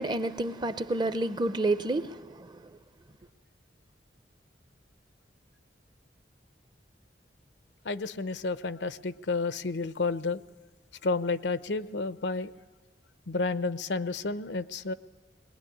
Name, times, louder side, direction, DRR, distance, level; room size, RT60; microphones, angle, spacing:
voice 1, 0.0-2.5, right 2 dB, 25° right, 0.7 m, -29 dB
voice 2, 7.8-10.4 11.0-12.5 13.3-14.9, left 3 dB, 80° left, 0.7 m, -31 dB
21.5 x 19.5 x 9.9 m
head